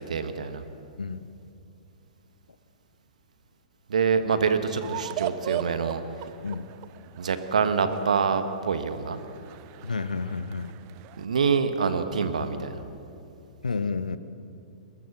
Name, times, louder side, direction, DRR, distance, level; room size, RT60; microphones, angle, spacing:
voice 1, 0.1-0.6 3.9-6.0 7.2-9.2 11.2-12.8, right 5 dB, 65° right, 9 dB, 1.5 m, -26 dB
sound 1, 4.8-11.2, right 12 dB, 35° right, 0.7 m, -38 dB
voice 2, 9.8-10.7 13.6-14.2, left 4 dB, 75° left, 14 dB, 0.9 m, -30 dB
22.0 x 20.5 x 6.2 m, 2.7 s
figure-of-eight pair, 110°, 4 cm